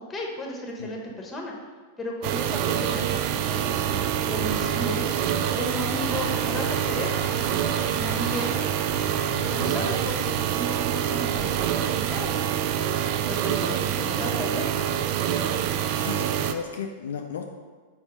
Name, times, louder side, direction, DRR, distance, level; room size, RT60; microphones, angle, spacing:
voice 1, 0.1-1.5 2.0-5.1 5.5-8.5 9.5-14.7, left 1 dB, 15° left, 0 dB, 1.2 m, -34 dB
sound 1, 2.2-16.5, right 10 dB, 45° right, 0.3 m, -26 dB
sound 2, 4.4-9.6, equal, 25° right, 1.3 m, -38 dB
voice 2, 9.3-10.1 15.6-17.4, left 6 dB, 65° left, 3 dB, 0.4 m, -36 dB
4.4 x 4.3 x 5.1 m, 1.4 s
figure-of-eight pair, 90°, 0 cm